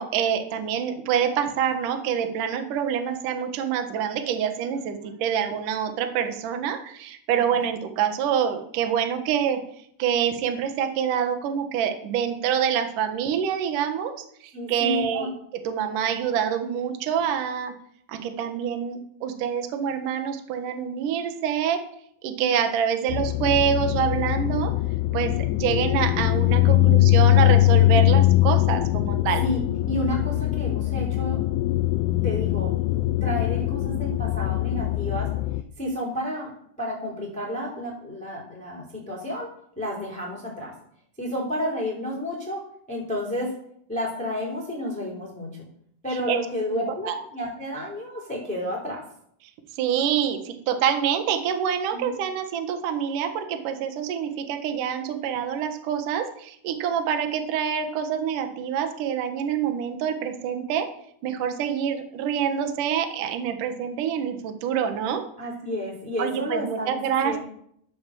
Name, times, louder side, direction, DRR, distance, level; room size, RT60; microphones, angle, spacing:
voice 1, 0.0-9.6 10.0-15.3 15.6-17.7 18.1-21.8 22.2-24.7 25.1-25.3 25.6-29.4 46.3-46.4 46.7-47.1 49.7-60.9 61.2-65.2 66.2-67.4, right 8 dB, 65° right, 6 dB, 2.3 m, -26 dB
voice 2, 14.5-15.3 22.4-22.5 29.4-29.6 29.9-31.4 32.2-35.3 35.8-36.5 36.8-39.5 39.8-40.7 41.2-42.6 42.9-43.5 43.9-45.7 46.0-49.0 51.9-52.1 65.4-67.4, left 1 dB, ahead, -3 dB, 3.6 m, -31 dB
sound 1, 23.1-35.6, left 16 dB, 90° left, 3.1 m, -22 dB
13.0 x 9.1 x 7.1 m, 0.67 s
omnidirectional pair, 5.4 m